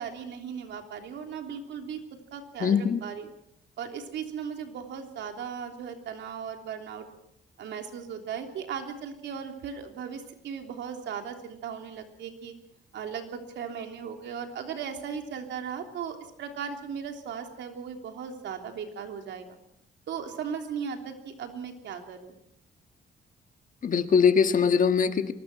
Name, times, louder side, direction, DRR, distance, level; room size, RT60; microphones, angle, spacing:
voice 1, 0.0-3.3 3.8-7.1 7.6-12.5 12.9-19.6 20.1-22.3, right 7 dB, 85° right, 5 dB, 3.3 m, -37 dB
voice 2, 2.6-3.0 23.8-25.3, left 6 dB, 50° left, 9 dB, 1.6 m, -22 dB
24.0 x 20.5 x 6.1 m, 0.75 s
cardioid pair, 110°, 18 cm